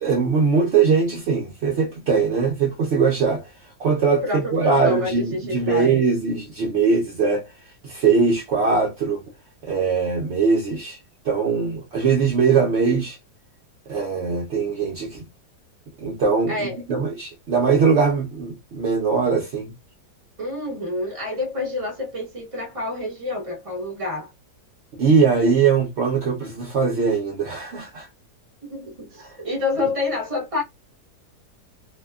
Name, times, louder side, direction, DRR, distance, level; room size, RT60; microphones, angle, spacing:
voice 1, 0.0-3.5 3.8-7.5 7.8-9.2 9.6-11.0 11.2-13.2 13.9-15.2 16.0-19.7 24.9-28.1 29.2-29.4, right 5 dB, 65° right, 0.6 m, -21 dB
voice 2, 4.2-6.0 16.5-16.8 20.4-24.3 28.6-30.6, left 2 dB, 25° right, 0.8 m, -28 dB
2.7 x 2.2 x 2.2 m
omnidirectional pair, 1.8 m